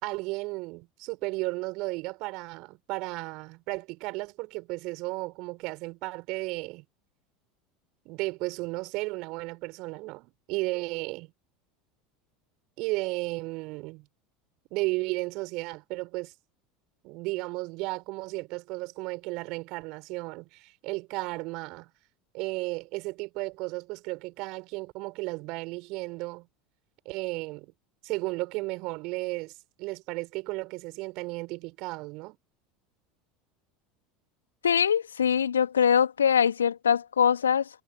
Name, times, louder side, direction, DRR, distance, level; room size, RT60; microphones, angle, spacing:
voice 1, 0.0-6.8 8.0-11.3 12.8-14.1 14.7-16.3 17.0-21.9 22.3-26.5 27.0-27.7 28.0-29.5 29.8-32.4, right 24 dB, 50° right, 6.5 m, -34 dB
voice 2, 34.6-37.7, left 8 dB, 75° left, 3.0 m, -23 dB
figure-of-eight pair, 75°, 0 cm